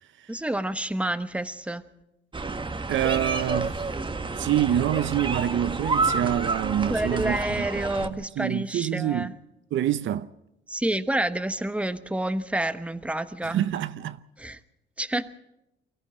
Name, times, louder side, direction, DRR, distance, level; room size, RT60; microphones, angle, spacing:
voice 1, 0.3-1.8 6.9-9.3 10.7-13.6 14.4-14.6 15.0-15.3, right 1 dB, 5° right, 1.1 m, -29 dB
sound 1, 2.3-8.1, right 3 dB, 25° right, 1.6 m, -29 dB
voice 2, 2.9-3.9 4.3-7.4 8.0-8.1 8.4-9.3 9.7-10.3 13.4-14.2, right 11 dB, 75° right, 0.7 m, -26 dB
24.0 x 14.0 x 7.8 m
cardioid pair, 90°, 20 cm